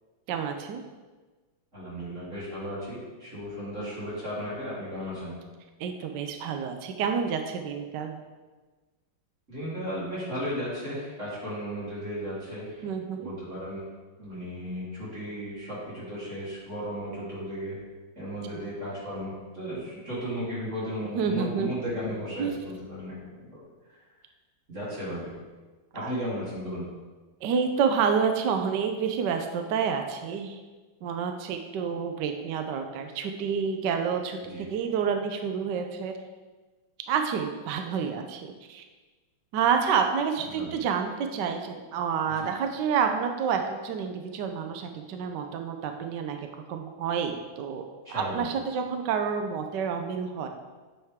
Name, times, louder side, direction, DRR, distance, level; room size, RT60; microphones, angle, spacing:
voice 1, 0.3-0.8 5.8-8.2 12.8-13.3 18.5-18.6 21.1-21.7 22.4-22.5 26.0-26.1 27.4-30.6 31.0-36.1 37.1-38.8 39.5-46.4 46.7-50.5, right 6 dB, 65° right, 5 dB, 1.2 m, -29 dB
voice 2, 1.7-5.3 9.5-12.9 13.2-13.9 14.2-17.8 18.2-23.6 24.7-25.3 25.9-26.9 34.4-34.6 40.5-40.7 42.3-42.5 48.1-48.5, equal, 35° right, -8 dB, 3.7 m, -35 dB
9.3 x 7.9 x 3.6 m, 1.3 s
omnidirectional pair, 2.3 m